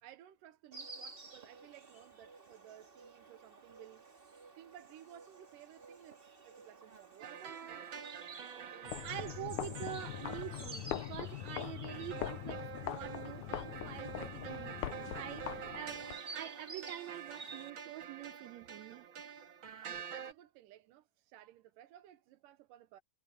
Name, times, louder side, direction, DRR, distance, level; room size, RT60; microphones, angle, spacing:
voice 1, 0.0-4.1 4.6-7.9 8.7-9.3 9.7-9.8 11.6-11.8 15.6-15.8 20.1-23.0, right 12 dB, 90° right, 2.6 m, -57 dB
Insect, 0.7-17.7, right 3 dB, 25° right, 1.4 m, -53 dB
sound 1, 7.2-20.3, right 8 dB, 45° right, 1.9 m, -47 dB
voice 2, 8.6-19.1, right 13 dB, 70° right, 2.1 m, -46 dB
sound 2, 8.8-16.2, left 14 dB, 75° left, 2.0 m, -42 dB
omnidirectional pair, 3.8 m